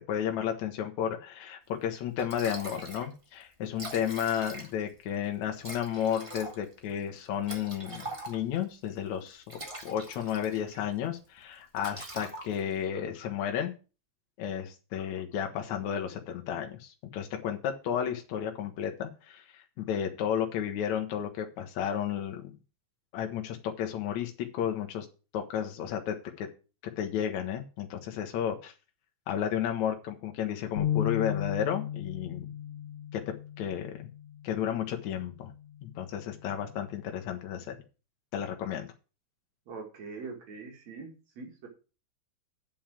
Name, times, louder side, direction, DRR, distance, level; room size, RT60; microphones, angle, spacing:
voice 1, 0.1-9.4 9.8-13.7 14.4-22.6 23.1-25.1 25.3-26.5 27.0-28.7 29.3-32.5 33.1-33.9 34.4-35.5 35.8-37.8 38.3-38.9, left 9 dB, 75° left, 4 dB, 2.4 m, -32 dB
Liquid, 1.8-1.9 2.2-3.1 3.4-3.5 3.7-4.9 5.6-8.6 9.3-10.8 11.1-11.4 11.7-12.8, right 2 dB, 15° right, 1.2 m, -42 dB
sound 1, 30.8-37.0, left 10 dB, 30° left, 1.7 m, -36 dB
voice 2, 39.7-41.1 41.4-41.7, right 4 dB, 65° right, 2 dB, 3.3 m, -42 dB
8.7 x 5.5 x 7.4 m, 0.34 s
omnidirectional pair, 3.3 m